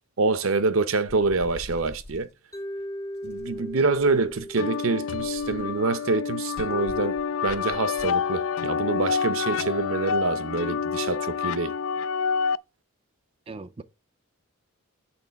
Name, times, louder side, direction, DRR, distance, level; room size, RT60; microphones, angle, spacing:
voice 1, 0.2-2.3 3.2-7.2 7.4-11.7, right 3 dB, 65° right, 0.7 m, -26 dB
sound 1, 1.1-2.3 3.2-4.5 5.1-5.8 6.6-8.2, left 1 dB, 45° left, 0.8 m, -45 dB
Mallet percussion, 2.5-6.6, equal, 15° left, 0.7 m, -39 dB
voice 2, 3.5-3.9 13.5-13.8, right 3 dB, 25° right, 0.4 m, -42 dB
sound 2, 4.6-12.6, left 6 dB, 70° left, 0.3 m, -28 dB
8.7 x 3.8 x 6.8 m
head